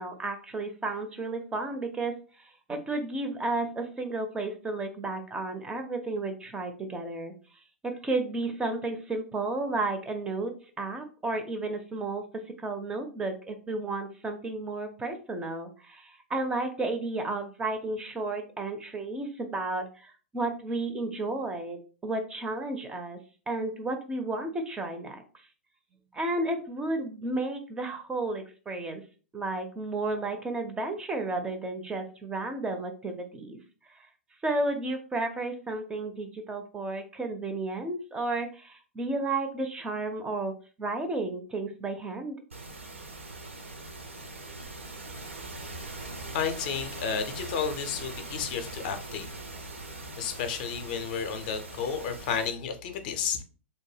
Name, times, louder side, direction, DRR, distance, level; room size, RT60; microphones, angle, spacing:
voice 1, 0.0-7.3 7.8-12.2 12.6-23.2 23.5-25.2 26.1-29.0 29.3-33.6 34.4-40.5 40.8-42.3, right 2 dB, 15° right, 5 dB, 0.4 m, -32 dB
sound 1, 42.5-52.5, right 2 dB, 80° right, 0.6 m, -41 dB
voice 2, 46.0-49.3 50.2-53.4, left 7 dB, 45° left, 7 dB, 0.5 m, -32 dB
2.6 x 2.1 x 3.2 m, 0.37 s
figure-of-eight pair, 105°, 7 cm